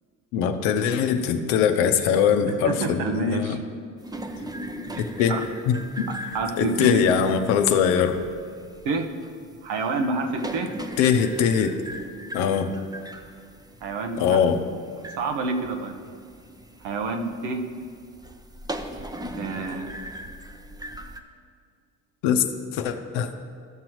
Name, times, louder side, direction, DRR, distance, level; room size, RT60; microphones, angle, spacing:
voice 1, 0.3-3.6 5.0-5.3 5.7-6.1 6.6-8.2 11.0-11.7 12.3-12.7 14.2-14.6 22.2-22.4 22.7-23.3, left 7 dB, 75° left, 7 dB, 0.8 m, -22 dB
voice 2, 2.5-3.6 4.7-5.0 5.3-5.4 6.3-7.1 8.8-9.1 9.6-10.7 13.8-14.4 15.2-16.0 16.8-17.6 19.4-19.9, right 3 dB, 70° right, 4 dB, 1.0 m, -28 dB
sound 1, 4.0-21.2, right 1 dB, 10° right, 0.7 m, -39 dB
13.0 x 6.3 x 3.1 m, 2.2 s
hypercardioid pair, 65°, 42 cm